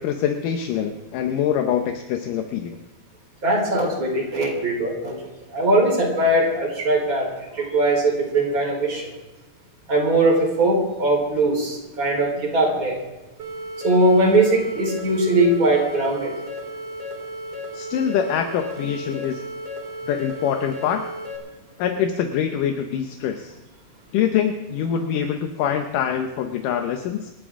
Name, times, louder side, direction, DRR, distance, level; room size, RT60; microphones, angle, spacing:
voice 1, 0.0-2.8 17.7-19.4 20.1-21.0 21.8-23.5 24.1-27.3, left 8 dB, 70° left, 6 dB, 2.2 m, -24 dB
voice 2, 3.4-5.1 5.5-9.1 9.9-13.0 13.8-16.3, right 1 dB, 20° right, -2 dB, 4.4 m, -20 dB
sound 1, 13.4-21.4, equal, 40° right, 4.9 m, -34 dB
27.5 x 11.5 x 3.7 m, 1.1 s
omnidirectional pair, 4.5 m